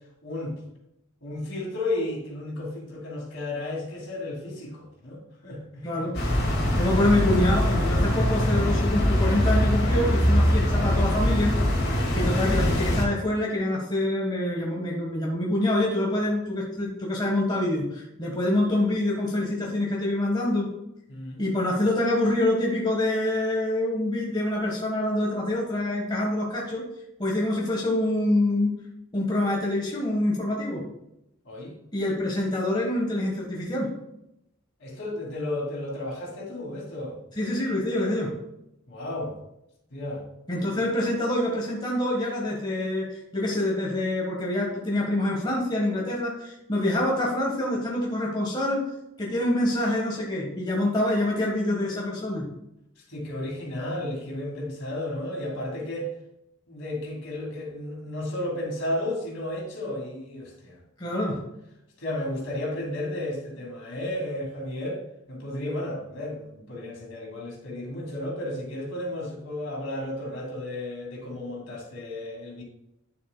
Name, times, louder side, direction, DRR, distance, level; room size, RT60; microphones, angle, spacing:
voice 1, 0.2-0.6 1.2-6.0 11.9-12.2 21.1-21.4 31.4-31.7 34.8-37.1 38.9-39.3 39.9-40.2 53.1-56.1 56.7-60.8 61.0-61.3 62.0-65.0 65.3-72.6, left 1 dB, 70° left, -1 dB, 2.5 m, -33 dB
voice 2, 5.8-6.2 6.7-11.6 12.1-20.7 21.4-26.8 27.2-28.8 29.1-30.8 31.9-33.9 37.4-38.3 40.5-48.9 49.2-52.5 61.0-61.4, left 1 dB, 20° left, -2 dB, 1.3 m, -26 dB
sound 1, 6.1-13.0, equal, 50° left, 2.0 m, -23 dB
9.3 x 7.3 x 2.2 m, 0.84 s
head